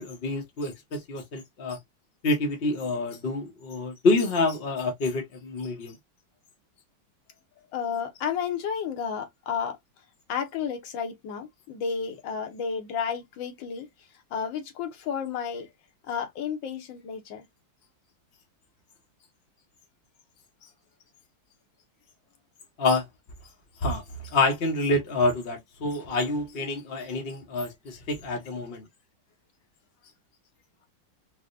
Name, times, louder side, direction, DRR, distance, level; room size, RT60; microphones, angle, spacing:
voice 1, 0.0-1.8 2.2-5.9 22.8-23.0 23.8-28.8, left 2 dB, 55° left, 0.7 m, -27 dB
voice 2, 7.7-9.8 10.3-13.9 14.3-15.7 16.1-17.4 25.8-25.9, left 7 dB, 75° left, 1.4 m, -32 dB
4.6 x 2.1 x 2.5 m
omnidirectional pair, 2.1 m